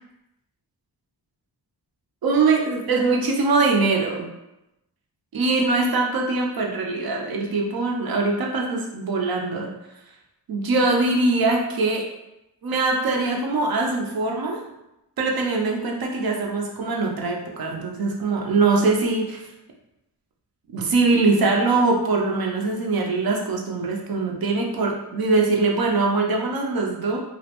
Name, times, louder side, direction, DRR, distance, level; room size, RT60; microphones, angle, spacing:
voice 1, 2.2-4.3 5.3-9.7 10.5-12.0 12.6-14.6 15.2-19.5 20.7-27.2, right 3 dB, 60° right, 0 dB, 0.6 m, -22 dB
2.4 x 2.1 x 2.8 m, 0.90 s
wide cardioid pair, 100°, 42 cm